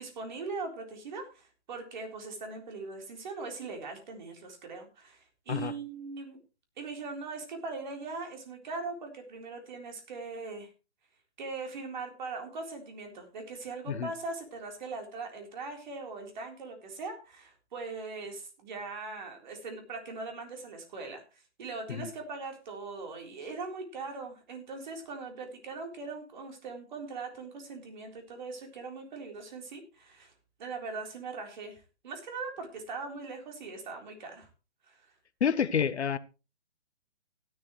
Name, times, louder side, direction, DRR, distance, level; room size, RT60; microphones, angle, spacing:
voice 1, 0.0-6.4 6.8-10.7 11.4-30.3 30.6-34.5 34.8-35.1, right 3 dB, 40° right, 3.9 m, -40 dB
voice 2, 35.4-36.2, left 7 dB, 70° left, 1.1 m, -28 dB
15.5 x 11.0 x 3.2 m
hypercardioid pair, 165°, 35 cm